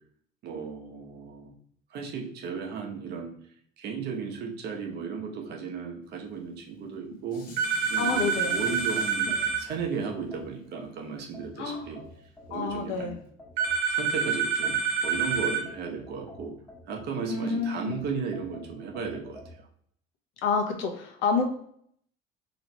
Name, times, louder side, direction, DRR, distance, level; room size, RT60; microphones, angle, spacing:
voice 1, 0.4-1.5 1.9-3.3 3.8-7.5 7.9-12.0 12.5-13.2 13.9-16.6 16.9-19.7, right 5 dB, 55° right, 2 dB, 1.1 m, -35 dB
Dishes pots and pans, 6.7-12.0 12.5-12.6, left 2 dB, 45° left, 1.1 m, -46 dB
sound 1, 7.6-9.6 13.6-15.6, right 5 dB, 90° right, 1.0 m, -27 dB
voice 2, 8.0-8.5 11.6-11.9 12.5-13.2 17.3-18.0 20.4-21.4, left 4 dB, 80° left, 3 dB, 1.0 m, -28 dB
sound 2, 8.0-10.8 11.3-14.1 14.6-17.4 17.9-19.5, left 1 dB, 15° left, 1.4 m, -49 dB
3.2 x 3.1 x 4.1 m, 0.64 s
cardioid pair, 150°, 20 cm